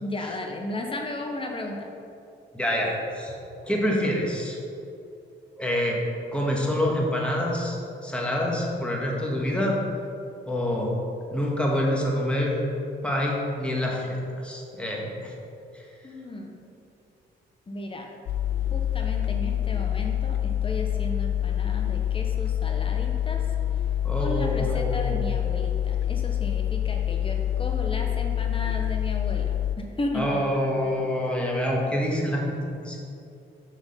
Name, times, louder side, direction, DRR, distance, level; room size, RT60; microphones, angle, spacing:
voice 1, 0.0-1.9 16.0-16.7 17.7-18.1 18.7-23.4 24.2-30.4 30.8-31.1, left 1 dB, 25° left, 2 dB, 1.2 m, -34 dB
voice 2, 2.5-3.4 3.6-4.6 5.6-6.0 6.3-7.8 8.0-9.8 10.5-11.0 11.3-12.6 13.0-15.3 15.7-15.8 24.0-25.2 30.1-33.0, left 1 dB, 5° left, -2 dB, 1.7 m, -26 dB
sound 1, 18.3-29.8, left 11 dB, 65° left, 0.4 m, -26 dB
6.4 x 5.8 x 5.7 m, 2.6 s
cardioid pair, 90°, 20 cm